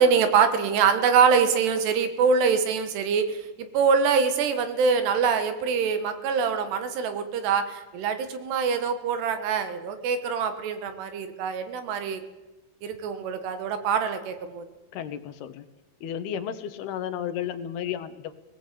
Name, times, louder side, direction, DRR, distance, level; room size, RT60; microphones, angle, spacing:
voice 1, 0.0-3.4 3.7-12.2 12.8-14.7, right 6 dB, 80° right, 9 dB, 3.6 m, -24 dB
voice 2, 14.9-15.6 16.0-18.4, left 9 dB, 75° left, 10 dB, 2.9 m, -33 dB
19.0 x 17.5 x 8.4 m, 1.1 s
omnidirectional pair, 4.8 m